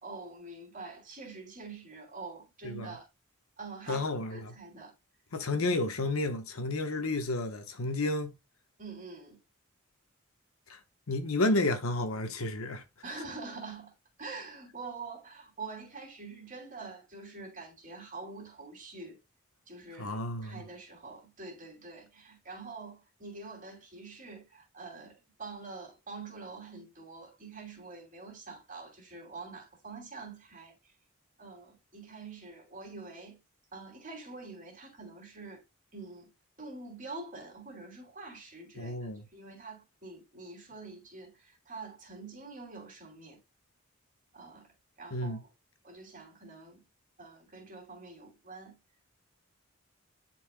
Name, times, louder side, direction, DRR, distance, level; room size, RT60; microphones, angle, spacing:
voice 1, 0.0-3.1 3.6-4.0 4.3-4.9 8.8-9.4 13.0-13.9 14.2-19.2 19.7-30.9 31.4-33.4 33.7-35.6 35.9-36.3 36.6-43.4 44.3-45.5 45.8-46.8 47.2-48.8, right 3 dB, 40° right, 2.7 m, -45 dB
voice 2, 3.9-4.5 5.3-8.3 10.7-10.8 11.1-12.8 20.0-20.6 38.8-39.2 45.1-45.4, left 2 dB, 85° left, 1.1 m, -31 dB
10.0 x 4.4 x 2.2 m
head